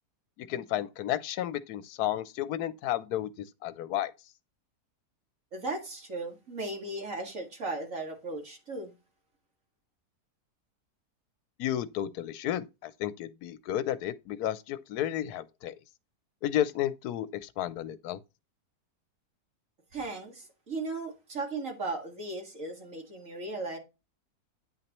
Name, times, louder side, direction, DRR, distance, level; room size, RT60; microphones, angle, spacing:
voice 1, 0.5-4.1 11.6-15.7 16.4-18.2, left 12 dB, 80° left, 1.1 m, -32 dB
voice 2, 5.5-8.9 19.9-23.8, right 2 dB, 55° right, 2.4 m, -36 dB
9.2 x 5.9 x 3.0 m
omnidirectional pair, 1.7 m